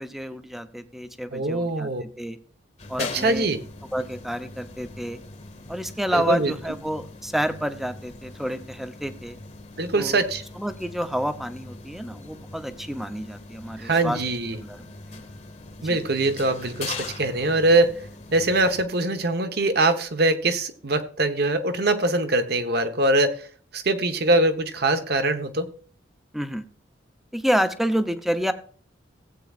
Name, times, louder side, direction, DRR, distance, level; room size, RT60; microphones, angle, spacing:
voice 1, 0.0-1.9 2.2-2.4 2.9-3.5 3.9-5.2 5.7-9.4 9.9-10.2 10.6-14.2 14.7-14.8 15.1-15.2 15.8-16.0 26.3-26.6 27.3-28.5, equal, ahead, 9 dB, 0.7 m, -29 dB
voice 2, 1.3-2.0 3.0-3.6 6.1-6.5 9.8-10.4 13.8-14.6 15.8-18.0 18.3-23.5 23.7-25.7, right 2 dB, 55° right, 8 dB, 1.1 m, -23 dB
sound 1, 2.8-18.8, left 3 dB, 40° left, 1.2 m, -41 dB
16.5 x 8.4 x 2.5 m, 0.44 s
head